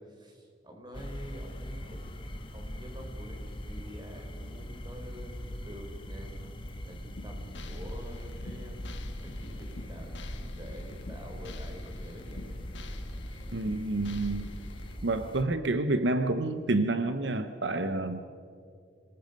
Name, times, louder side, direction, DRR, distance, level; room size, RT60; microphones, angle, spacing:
voice 1, 0.0-6.5 6.8-8.8 9.2-12.6 14.3-14.7, equal, 25° right, 2 dB, 3.9 m, -47 dB
sound 1, 0.9-15.4, equal, 30° left, 1.7 m, -41 dB
sound 2, 7.2-15.0, left 1 dB, 80° left, 1.4 m, -44 dB
voice 2, 13.5-14.5 15.0-18.2, right 2 dB, 75° right, 10 dB, 0.9 m, -29 dB
28.0 x 20.0 x 5.3 m, 2.4 s
head